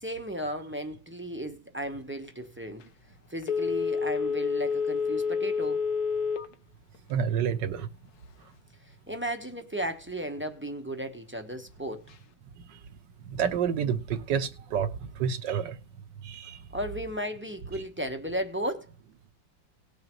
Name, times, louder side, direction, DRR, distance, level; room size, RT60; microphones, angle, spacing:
voice 1, 0.0-2.9 3.3-5.8 9.1-12.0 16.7-18.9, equal, 10° right, 0.6 m, -35 dB
Telephone, 3.4-6.5 6.9-7.0, left 5 dB, 60° left, 1.3 m, -28 dB
voice 2, 7.1-7.9 13.3-14.9 15.2-15.8 16.2-16.6, right 7 dB, 70° right, 1.6 m, -28 dB
19.0 x 6.7 x 3.1 m
omnidirectional pair, 2.1 m